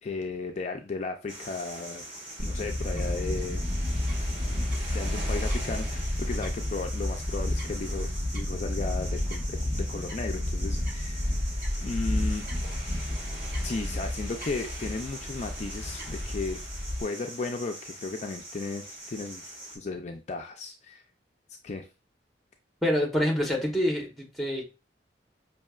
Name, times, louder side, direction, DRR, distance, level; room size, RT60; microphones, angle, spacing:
voice 1, 0.0-2.0 2.4-3.6 4.9-11.3 11.8-12.5 13.6-16.6 17.0-19.4 19.7-21.0 21.6-21.9, left 3 dB, 40° left, 4 dB, 0.4 m, -35 dB
sound 1, 1.3-19.8, right 1 dB, 30° right, 1.6 m, -42 dB
Fowl / Bird, 2.4-17.0, left 1 dB, 55° right, 1.5 m, -31 dB
voice 2, 22.8-24.6, equal, ahead, 0 dB, 1.0 m, -26 dB
5.4 x 2.7 x 2.3 m, 0.30 s
head